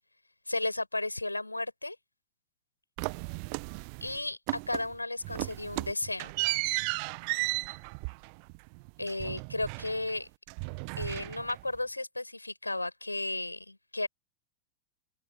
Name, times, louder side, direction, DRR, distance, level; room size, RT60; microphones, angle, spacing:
voice 1, 0.5-2.0 4.0-6.3 9.0-10.3 11.0-14.1, left 2 dB, 85° left, 5.5 m, -34 dB
sound 1, 3.0-4.2 4.5-5.0 5.2-10.2 10.5-11.8, right 39 dB, 45° right, 1.1 m, -35 dB
open air
figure-of-eight pair, 90°, 0 cm